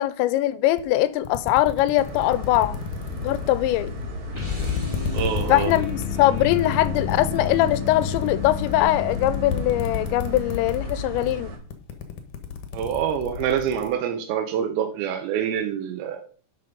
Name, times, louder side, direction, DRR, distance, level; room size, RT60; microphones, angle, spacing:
voice 1, 0.0-2.8 3.2-3.9 5.5-11.5, left 14 dB, 90° left, 3.0 m, -22 dB
sound 1, 0.8-0.9 1.2-4.1 4.5-10.9 11.2-11.4 11.7-13.9, left 7 dB, 65° left, 2.1 m, -32 dB
sound 2, 2.0-11.6, left 1 dB, 35° right, 3.0 m, -35 dB
sound 3, 4.3-10.8, left 6 dB, 20° right, 0.8 m, -32 dB
voice 2, 5.1-5.7 12.7-16.2, right 9 dB, 80° right, 3.2 m, -26 dB
11.5 x 5.9 x 5.2 m
omnidirectional pair, 5.1 m